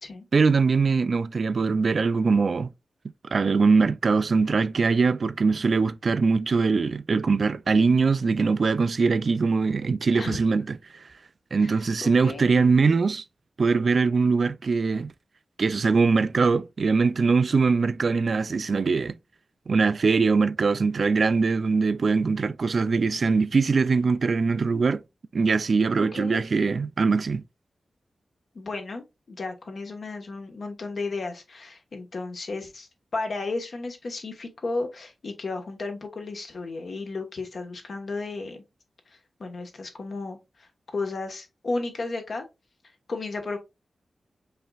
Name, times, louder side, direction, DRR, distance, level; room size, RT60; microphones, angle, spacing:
voice 1, 0.3-2.7 3.3-10.8 11.5-13.2 13.6-15.1 15.6-19.2 19.7-25.0 25.3-27.4, right 4 dB, 55° right, 0.3 m, -22 dB
voice 2, 11.6-12.7 26.0-26.4 28.5-38.6 39.1-42.4 43.1-43.6, left 3 dB, 60° left, 1.3 m, -34 dB
5.5 x 4.1 x 2.4 m
wide cardioid pair, 115°, 0 cm